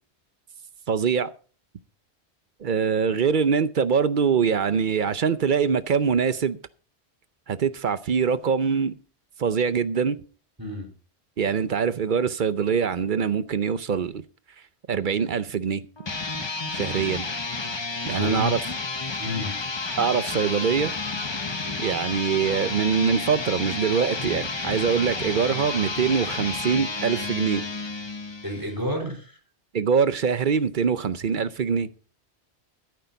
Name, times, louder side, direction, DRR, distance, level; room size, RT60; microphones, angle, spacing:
voice 1, 0.9-1.3 2.6-6.6 7.5-8.9 9.4-10.2 11.4-14.2 14.9-15.8 16.7-17.2 18.1-18.6 20.0-20.9 21.8-27.6 29.7-31.9, right 6 dB, 50° right, 0.8 m, -23 dB
voice 2, 10.6-10.9 18.1-18.5 19.2-19.6 28.4-29.4, left 1 dB, 20° right, 3.8 m, -30 dB
sound 1, 16.0-28.7, left 3 dB, 25° left, 0.8 m, -31 dB
13.0 x 11.5 x 3.9 m
omnidirectional pair, 1.1 m